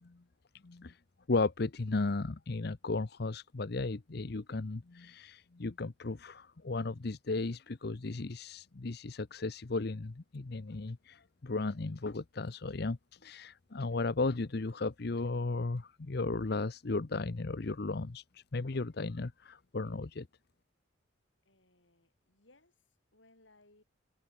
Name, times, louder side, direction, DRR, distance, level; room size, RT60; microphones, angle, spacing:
voice 1, 0.6-1.0 1.3-20.3, left 3 dB, 55° left, 0.8 m, -35 dB
voice 2, 21.5-22.8 23.1-23.8, left 2 dB, 80° left, 7.7 m, -65 dB
head